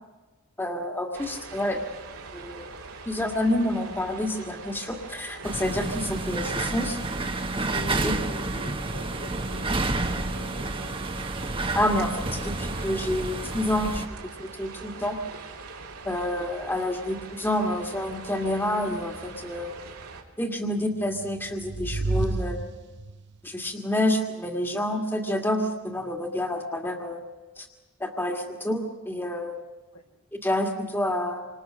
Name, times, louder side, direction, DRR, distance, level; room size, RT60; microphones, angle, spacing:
voice 1, 0.6-1.8 2.3-2.7 3.1-7.0 8.0-8.1 11.7-15.2 16.1-19.8 20.4-22.6 23.4-27.2 27.6-27.7 28.0-29.6 30.4-31.5, left 1 dB, 10° left, 3 dB, 2.1 m, -28 dB
sound 1, 1.1-20.2, right 4 dB, 85° right, 3.5 m, -43 dB
sound 2, 5.4-14.1, right 2 dB, 25° right, 1.3 m, -30 dB
voice 2, 7.7-11.0 29.9-30.0, left 2 dB, 80° left, 2 dB, 4.4 m, -45 dB
sound 3, 21.0-23.4, right 2 dB, 55° right, 0.8 m, -31 dB
27.5 x 26.5 x 6.5 m, 1.2 s
head